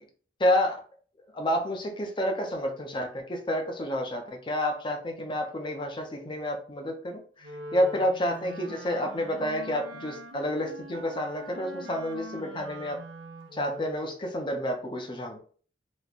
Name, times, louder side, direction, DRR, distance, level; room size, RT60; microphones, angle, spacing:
voice 1, 0.4-0.8 1.3-13.0 13.5-15.4, left 1 dB, 25° left, 3 dB, 0.6 m, -29 dB
Wind instrument woodwind instrument, 7.4-14.1, right 1 dB, 90° right, 0.6 m, -43 dB
3.1 x 2.2 x 4.0 m, 0.43 s
head